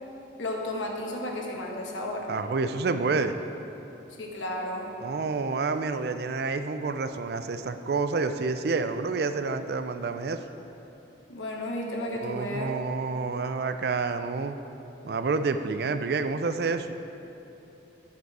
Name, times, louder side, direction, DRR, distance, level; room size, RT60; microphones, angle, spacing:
voice 1, 0.4-2.3 4.2-5.0 11.3-12.8, left 1 dB, 90° left, 0 dB, 1.2 m, -33 dB
voice 2, 2.3-3.4 5.0-10.4 12.2-14.6 15.0-17.0, right 4 dB, 55° right, 9 dB, 0.4 m, -29 dB
9.4 x 6.7 x 4.7 m, 3.0 s
head